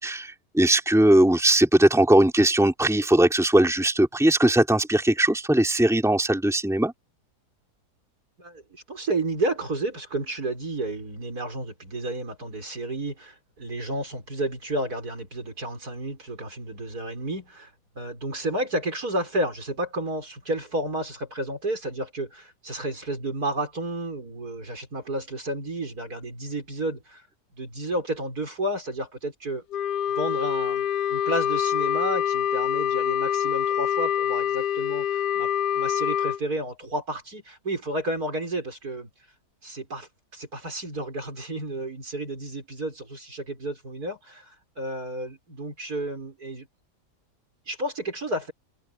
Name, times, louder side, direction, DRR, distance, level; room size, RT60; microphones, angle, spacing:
voice 1, 0.0-6.9, right 1 dB, ahead, 3.4 m, -20 dB
voice 2, 8.4-17.7 18.0-27.3 27.6-29.6 30.2-39.1 39.6-46.7 47.7-48.5, right 1 dB, 65° right, 6.5 m, -31 dB
Wind instrument woodwind instrument, 29.7-36.4, left 10 dB, 85° left, 1.3 m, -25 dB
open air
omnidirectional pair, 1.8 m